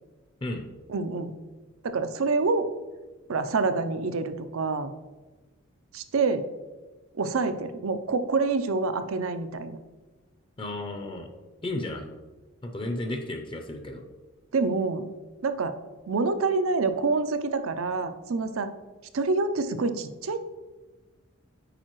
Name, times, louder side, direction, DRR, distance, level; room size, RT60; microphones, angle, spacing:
voice 1, 0.9-1.4 1.8-2.7 3.3-4.9 5.9-6.5 7.1-9.8 14.5-15.1 15.4-15.7 16.1-18.7 19.1-20.4, right 3 dB, 80° right, 10 dB, 0.5 m, -27 dB
voice 2, 10.6-11.3 11.6-12.1 12.6-14.0, left 1 dB, 25° left, 5 dB, 0.5 m, -33 dB
8.9 x 4.8 x 3.1 m, 1.2 s
head